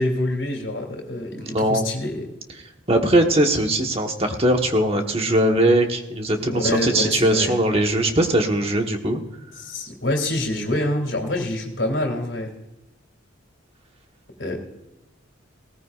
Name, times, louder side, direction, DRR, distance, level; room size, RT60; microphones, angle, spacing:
voice 1, 0.0-2.3 6.4-7.5 9.6-12.5 14.4-14.6, left 1 dB, 65° left, 1 dB, 2.8 m, -26 dB
voice 2, 1.4-1.8 2.9-9.2, right 1 dB, 30° right, 4 dB, 1.2 m, -20 dB
18.0 x 14.5 x 2.4 m, 0.95 s
head